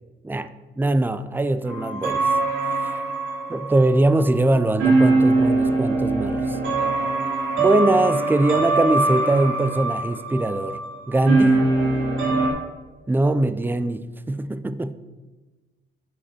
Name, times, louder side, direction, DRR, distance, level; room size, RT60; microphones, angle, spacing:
voice 1, 0.8-2.3 3.5-6.6 7.6-10.8 11.1-11.7 13.1-14.9, right 2 dB, 10° right, 0.5 m, -21 dB
sound 1, 1.6-12.5, right 3 dB, 80° right, 2.7 m, -22 dB
10.0 x 4.8 x 6.3 m
cardioid pair, 90°, 20 cm